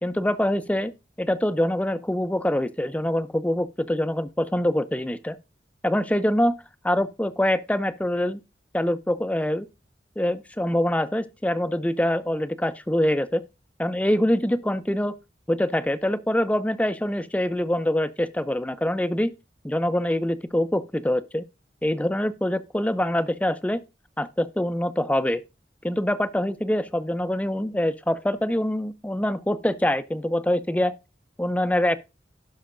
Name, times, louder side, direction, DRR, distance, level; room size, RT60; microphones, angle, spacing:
voice 1, 0.0-0.9 1.2-5.4 5.8-6.5 6.8-8.4 8.7-9.7 10.2-13.4 13.8-15.1 15.5-19.3 19.6-21.4 21.8-23.8 24.2-25.4 25.8-30.9 31.4-32.0, left 1 dB, 10° left, 0.4 m, -24 dB
16.5 x 5.6 x 2.5 m
head